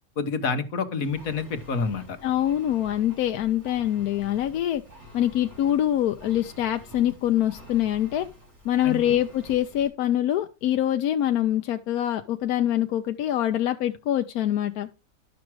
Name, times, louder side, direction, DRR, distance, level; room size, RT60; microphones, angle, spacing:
voice 1, 0.2-2.2 8.8-9.2, left 4 dB, 70° left, 1.6 m, -28 dB
Engine, 1.0-9.9, equal, 50° right, 5.1 m, -47 dB
voice 2, 2.2-4.8 5.1-8.3 8.6-14.9, left 11 dB, 85° left, 1.1 m, -24 dB
11.5 x 6.1 x 4.7 m
omnidirectional pair, 1.5 m